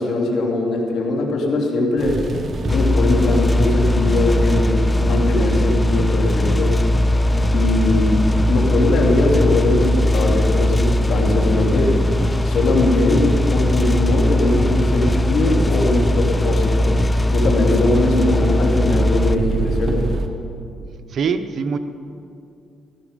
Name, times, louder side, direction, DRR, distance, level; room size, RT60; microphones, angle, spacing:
voice 1, 0.0-2.2 2.7-6.7 7.5-8.2 8.5-11.9 12.4-16.9 17.3-20.0, left 2 dB, 70° left, 0 dB, 2.9 m, -20 dB
sound 1, 2.0-20.3, right 3 dB, 35° right, 1.4 m, -28 dB
sound 2, 2.7-19.4, left 1 dB, 20° left, 0.4 m, -19 dB
voice 2, 21.1-21.8, right 6 dB, 60° right, 9 dB, 0.9 m, -22 dB
16.0 x 14.0 x 5.2 m, 2.6 s
cardioid pair, 90°, 0 cm